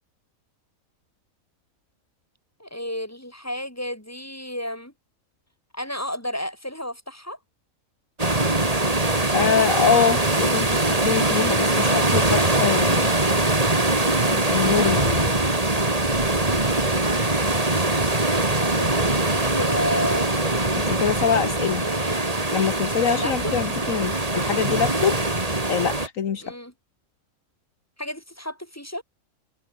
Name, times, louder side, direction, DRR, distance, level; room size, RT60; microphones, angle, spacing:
voice 1, 2.6-4.9 5.7-7.4 18.2-20.4 21.8-22.4 23.0-23.5 26.4-26.7 28.0-29.0, left 1 dB, 10° left, 5.5 m, -32 dB
sound 1, 8.2-26.1, right 2 dB, 25° right, 2.9 m, -22 dB
voice 2, 9.3-13.1 14.3-15.3 20.8-21.8 22.5-25.1 25.7-26.4, left 7 dB, 70° left, 1.6 m, -24 dB
omnidirectional pair, 1.5 m